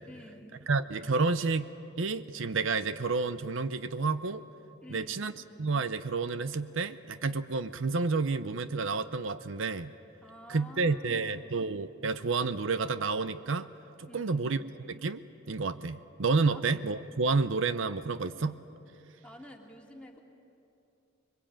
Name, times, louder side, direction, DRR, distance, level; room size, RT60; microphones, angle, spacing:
voice 1, 0.1-0.6 4.8-5.3 10.2-11.6 14.0-14.5 16.5-16.6 19.2-20.2, left 1 dB, 5° left, 0 dB, 2.5 m, -50 dB
voice 2, 0.7-1.7 2.0-4.4 4.9-5.3 5.6-9.9 10.5-13.7 14.0-15.2 15.5-18.6, right 4 dB, 70° right, 12 dB, 0.7 m, -30 dB
26.0 x 22.0 x 8.9 m, 2.8 s
head